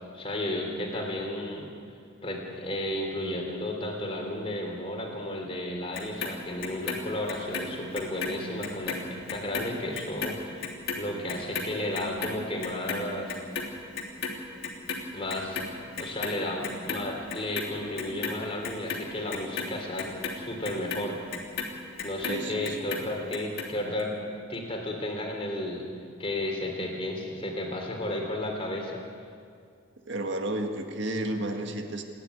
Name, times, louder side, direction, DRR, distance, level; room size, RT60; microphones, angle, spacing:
voice 1, 0.1-1.7 2.2-10.7 11.0-13.4 15.1-15.6 16.0-21.2 22.0-24.1 24.5-25.9 26.2-29.0, left 1 dB, 25° left, 1 dB, 3.5 m, -33 dB
Clock, 5.9-8.3 8.6-15.0 15.3-16.4 16.6-17.6 18.0-22.4 22.7-23.7 24.0-24.1, left 5 dB, 50° left, 3.2 m, -34 dB
voice 2, 22.3-23.2 30.1-32.0, right 1 dB, 55° right, 4 dB, 1.9 m, -32 dB
28.0 x 10.5 x 9.7 m, 2.2 s
head